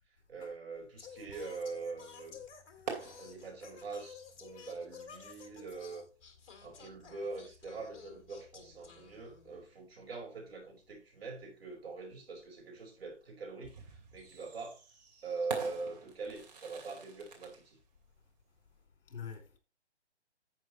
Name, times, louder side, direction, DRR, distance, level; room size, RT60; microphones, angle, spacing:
voice 1, 0.3-2.4 3.2-6.1 6.6-14.8 15.2-17.8, right 4 dB, 55° right, 5.0 m, -43 dB
sound 1, 0.8-18.8, right 5 dB, 35° right, 2.7 m, -49 dB
Singing, 1.0-9.7, left 7 dB, 25° left, 2.0 m, -53 dB
voice 2, 2.9-3.2 19.1-19.6, left 7 dB, 50° left, 3.1 m, -46 dB
11.0 x 8.4 x 3.1 m
figure-of-eight pair, 150°, 35 cm